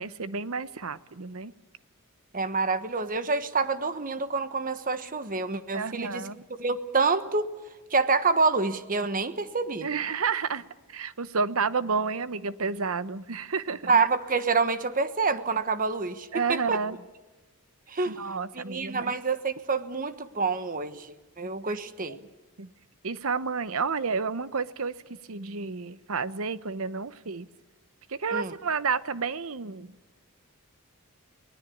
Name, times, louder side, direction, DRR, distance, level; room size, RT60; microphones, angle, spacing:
voice 1, 0.0-1.5 5.7-6.4 9.8-10.6 10.9-14.0 16.3-17.0 18.1-19.1 21.7-21.8 22.1-22.2 22.6-22.7 23.0-27.5 28.1-30.0, right 5 dB, 70° right, 15 dB, 0.9 m, -31 dB
voice 2, 2.3-6.3 6.6-7.5 7.9-9.9 13.9-16.8 17.9-22.2 28.3-28.5, right 4 dB, 40° right, 11 dB, 1.2 m, -27 dB
24.0 x 19.0 x 8.5 m, 1.1 s
head